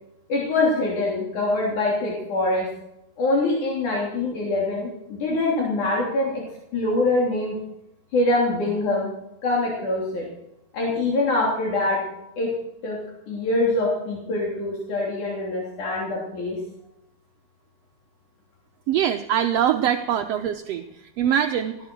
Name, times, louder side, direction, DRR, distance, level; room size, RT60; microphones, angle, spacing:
voice 1, 0.3-2.7 3.2-6.4 6.7-7.6 8.1-9.1 9.4-10.3 10.7-12.0 12.4-12.5 12.8-13.0 13.3-16.6, left 2 dB, 85° left, -3 dB, 4.7 m, -24 dB
voice 2, 18.9-21.8, right 10 dB, 75° right, 6 dB, 1.6 m, -23 dB
18.5 x 16.0 x 4.6 m, 0.85 s
omnidirectional pair, 3.4 m